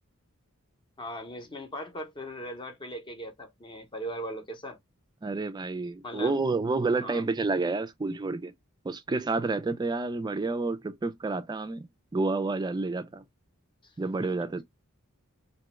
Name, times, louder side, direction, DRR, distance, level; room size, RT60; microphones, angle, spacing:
voice 1, 1.0-4.8 6.0-6.4 7.0-7.3 13.8-13.9 14.2-14.3, equal, 20° left, 0.6 m, -39 dB
voice 2, 5.2-8.5 8.8-11.9 12.1-13.2 14.0-14.6, right 3 dB, 20° right, 0.3 m, -29 dB
2.9 x 2.2 x 2.9 m
head